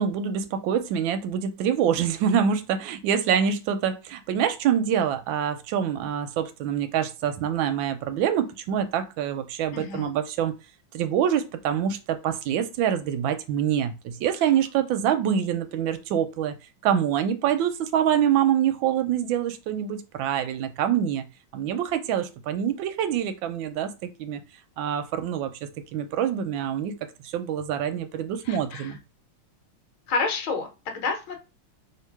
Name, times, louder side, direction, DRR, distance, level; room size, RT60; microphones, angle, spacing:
voice 1, 0.0-10.5 10.9-16.6 16.8-21.3 21.5-24.4 24.8-27.0 27.3-29.0, right 9 dB, 75° right, 1.2 m, -25 dB
voice 2, 9.7-10.1 28.4-28.9 30.1-31.4, left 4 dB, 75° left, 1.7 m, -29 dB
3.2 x 2.9 x 4.6 m
omnidirectional pair, 2.3 m